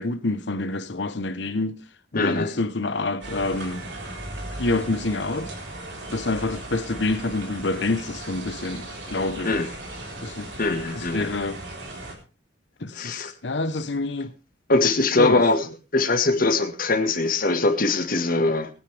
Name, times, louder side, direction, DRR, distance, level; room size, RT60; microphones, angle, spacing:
voice 1, 0.0-1.8 2.1-3.8 4.6-5.5 6.1-9.6 10.2-10.5 11.0-11.6 12.8-14.3 15.2-15.4, left 2 dB, 75° left, 1.0 m, -27 dB
voice 2, 2.1-2.6 9.4-9.7 10.6-11.3 12.9-13.3 14.7-18.7, left 3 dB, 55° left, 1.7 m, -22 dB
sound 1, 3.2-12.2, right 1 dB, 75° right, 3.9 m, -37 dB
20.5 x 9.5 x 3.4 m
head